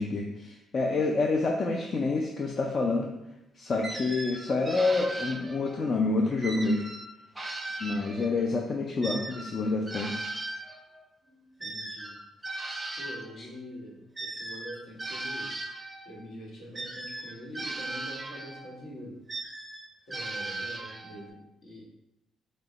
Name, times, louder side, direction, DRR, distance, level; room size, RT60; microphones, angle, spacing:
voice 1, 0.0-3.1 3.6-6.8 7.8-10.3 13.4-13.5, left 3 dB, 45° left, 1 dB, 0.4 m, -28 dB
sound 1, 3.8-5.9 6.4-8.5 9.0-13.4 14.2-16.1 16.7-18.7 19.3-21.3, right 2 dB, 15° right, 0.5 m, -38 dB
voice 2, 11.6-12.2 13.0-15.5 16.0-19.2 20.1-21.8, equal, 70° left, -3 dB, 1.3 m, -44 dB
4.4 x 2.1 x 3.9 m, 0.91 s
cardioid pair, 90°, 0 cm